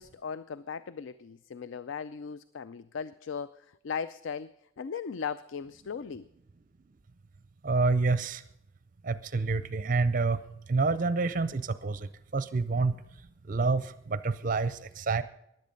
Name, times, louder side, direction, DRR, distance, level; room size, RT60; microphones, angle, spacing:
voice 1, 0.0-6.3, left 6 dB, 65° left, 15 dB, 0.4 m, -38 dB
voice 2, 7.6-8.4 9.0-10.4 10.7-13.0 13.5-15.2, right 3 dB, 40° right, 14 dB, 0.5 m, -28 dB
16.0 x 11.0 x 5.2 m, 0.80 s
head